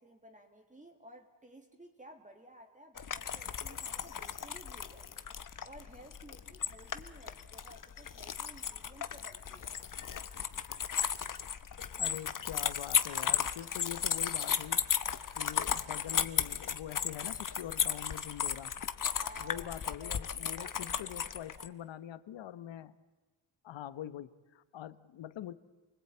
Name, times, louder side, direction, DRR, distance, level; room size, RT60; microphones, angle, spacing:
voice 1, 0.0-5.3 5.6-9.8 19.1-21.7, right 1 dB, 15° right, 3 dB, 2.3 m, -55 dB
sound 1, 3.0-21.7, left 8 dB, 45° left, 1.1 m, -35 dB
voice 2, 12.0-14.8 15.4-18.7 19.4-22.9 23.6-25.5, left 11 dB, 80° left, 16 dB, 1.1 m, -44 dB
28.0 x 20.0 x 8.9 m, 1.2 s
cardioid pair, 90°, 44 cm